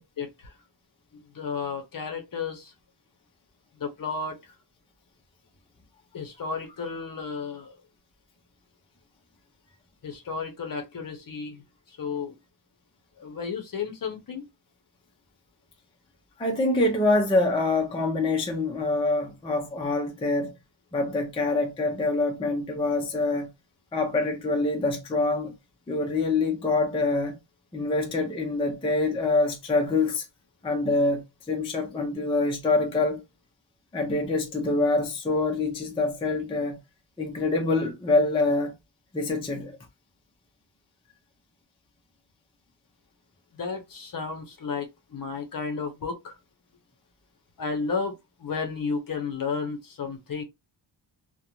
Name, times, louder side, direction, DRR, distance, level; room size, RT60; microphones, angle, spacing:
voice 1, 0.2-0.5 1.1-2.7 3.8-4.5 6.1-7.8 10.0-12.4 13.2-14.4 43.5-46.4 47.6-50.4, left 5 dB, 45° left, 0.6 m, -33 dB
voice 2, 16.4-20.5 20.9-23.5 23.9-25.5 25.9-27.4 27.7-30.3 30.6-33.2 33.9-36.8 37.2-38.8 39.1-39.8, left 2 dB, 15° left, 0.4 m, -25 dB
2.5 x 2.1 x 2.8 m
wide cardioid pair, 170°, 47 cm